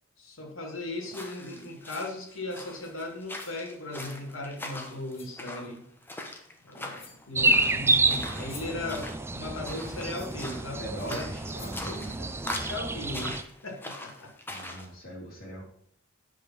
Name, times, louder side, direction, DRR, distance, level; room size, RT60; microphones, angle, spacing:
voice 1, 0.2-5.8 6.6-10.8 11.1-11.2 11.9-12.3 12.6-13.4 13.6-14.3, left 2 dB, 80° left, 2 dB, 2.2 m, -37 dB
sound 1, 1.0-14.9, left 1 dB, 10° left, 1.0 m, -42 dB
sound 2, 1.7-2.2 3.3-3.7 4.6-4.7 5.1-5.4 6.5-6.6 6.9-7.3 8.2-8.9 10.1-10.5 11.1-11.2 11.6-11.9, left 5 dB, 30° left, 1.2 m, -50 dB
sound 3, 7.3-13.4, right 2 dB, 10° right, 0.4 m, -29 dB
voice 2, 10.8-12.6 14.5-15.7, equal, 45° left, -4 dB, 3.7 m, -40 dB
8.6 x 5.1 x 6.1 m, 0.67 s
head